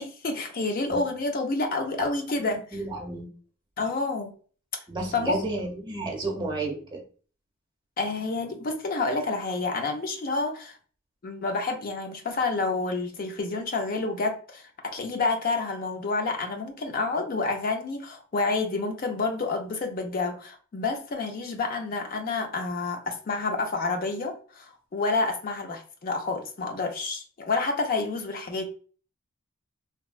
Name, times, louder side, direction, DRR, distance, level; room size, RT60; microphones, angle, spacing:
voice 1, 0.0-2.8 3.8-4.3 5.1-5.5 8.0-10.8 11.2-28.6, left 3 dB, 45° left, 4 dB, 0.4 m, -29 dB
voice 2, 2.5-3.3 4.9-7.0, right 2 dB, 20° right, -1 dB, 0.7 m, -32 dB
3.4 x 2.1 x 2.3 m, 0.41 s
head